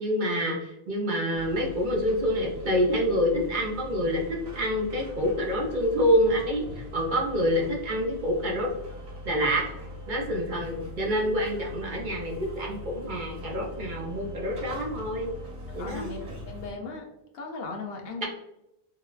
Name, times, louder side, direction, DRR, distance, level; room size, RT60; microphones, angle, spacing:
voice 1, 0.0-8.7 9.2-9.6 10.1-15.3 15.7-16.1 18.2-18.3, equal, 55° right, 0 dB, 0.7 m, -27 dB
sound 1, 1.3-16.7, left 1 dB, 80° right, 2.0 m, -41 dB
voice 2, 15.7-17.1 17.3-18.3, left 3 dB, 70° left, 2 dB, 0.8 m, -37 dB
3.7 x 2.2 x 2.3 m, 0.87 s
omnidirectional pair, 1.1 m